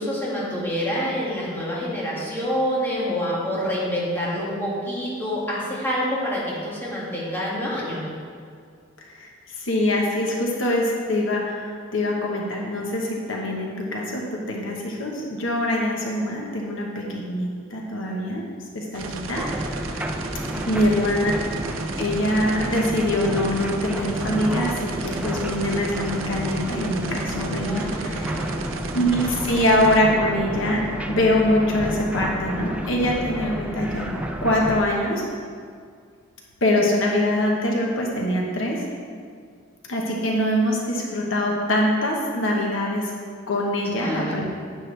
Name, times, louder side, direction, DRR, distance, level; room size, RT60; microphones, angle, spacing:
voice 1, 0.0-8.0 20.4-21.0 27.6-28.8 43.9-44.4, equal, 10° left, -7 dB, 2.1 m, -27 dB
voice 2, 9.6-18.4 18.7-20.0 20.7-21.3 22.0-28.3 28.9-34.1 34.4-35.2 36.6-38.8 39.9-43.0 43.5-44.5, left 1 dB, 70° left, -1 dB, 1.2 m, -24 dB
sound 1, 18.9-30.0, right 3 dB, 80° right, 0.7 m, -34 dB
sound 2, 19.3-34.9, right 1 dB, 5° right, 0.4 m, -31 dB
10.0 x 8.5 x 3.3 m, 2.1 s
head